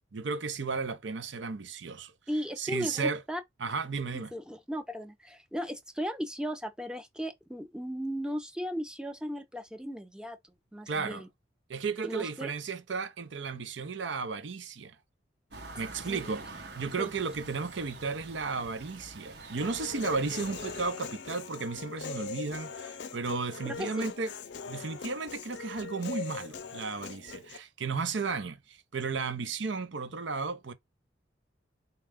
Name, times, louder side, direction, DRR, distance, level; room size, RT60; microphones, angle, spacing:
voice 1, 0.1-2.1 2.6-3.2 3.6-4.3 10.9-11.2 11.7-15.0 15.8-16.4 16.7-24.3 24.7-30.7, right 4 dB, 75° right, 0.6 m, -34 dB
voice 2, 2.3-3.4 4.1-11.3 12.0-12.5 16.0-16.3 17.0-17.1 23.6-24.1, equal, 5° right, 0.6 m, -36 dB
sound 1, 15.5-20.9, right 3 dB, 60° right, 1.0 m, -46 dB
Human voice, 19.6-27.6, left 5 dB, 65° left, 0.5 m, -41 dB
4.3 x 2.3 x 3.4 m
head